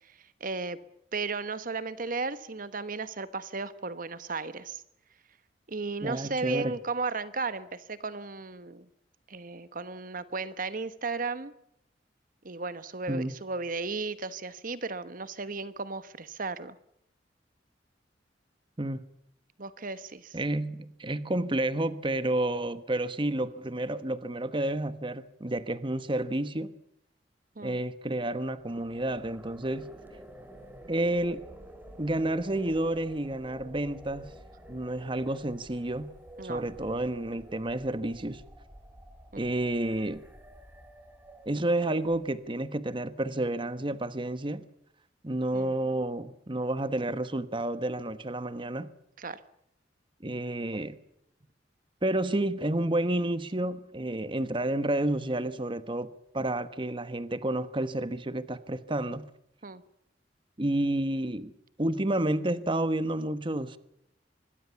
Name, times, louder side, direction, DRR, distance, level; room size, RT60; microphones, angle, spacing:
voice 1, 0.1-0.8 1.1-4.8 5.7-8.9 9.3-11.5 12.4-16.8 19.6-20.4 27.6-27.8 36.4-36.7 39.3-39.4 45.5-45.7 49.2-49.4 59.6-59.8, right 4 dB, 50° right, 1.2 m, -35 dB
voice 2, 6.0-6.7 13.1-13.3 18.8-19.0 20.3-26.7 27.6-29.9 30.9-31.4 32.0-34.2 34.7-36.1 36.4-38.4 39.4-40.2 41.5-44.6 45.2-48.9 50.2-51.0 52.0-56.1 56.3-59.3 60.6-61.5 61.8-63.8, right 1 dB, 30° right, 1.2 m, -30 dB
sound 1, 28.5-42.6, right 1 dB, 10° right, 3.9 m, -50 dB
25.5 x 21.5 x 7.0 m
head